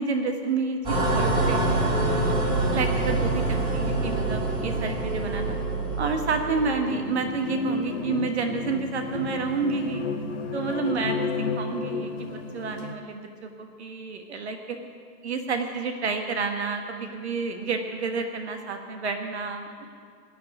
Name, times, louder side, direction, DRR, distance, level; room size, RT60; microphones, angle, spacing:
voice 1, 0.0-1.6 2.7-5.6 6.0-10.0 10.5-14.8 15.2-20.0, right 4 dB, 40° right, 5 dB, 1.5 m, -30 dB
sound 1, 0.8-6.9, right 2 dB, 10° right, 2.6 m, -25 dB
sound 2, 6.9-12.9, left 4 dB, 45° left, 1.7 m, -31 dB
18.5 x 7.0 x 9.9 m, 2.2 s
hypercardioid pair, 155°, 50 cm